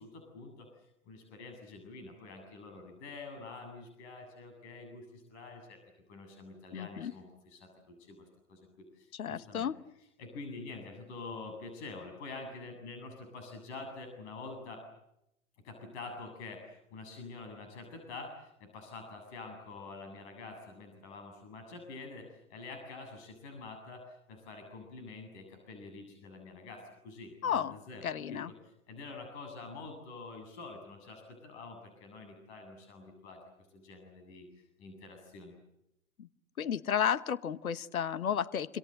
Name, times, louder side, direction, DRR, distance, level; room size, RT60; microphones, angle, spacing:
voice 1, 0.0-5.8 6.1-9.7 10.2-14.8 15.6-28.0 28.3-28.4 28.9-33.4 33.7-34.5 34.8-35.5, left 3 dB, 50° left, 5 dB, 7.9 m, -47 dB
voice 2, 6.7-7.1 9.1-9.8 27.4-27.8 28.0-28.5 36.2-36.3 36.6-38.8, left 8 dB, 75° left, 15 dB, 1.3 m, -32 dB
26.5 x 26.0 x 7.9 m, 0.83 s
figure-of-eight pair, 110°, 43 cm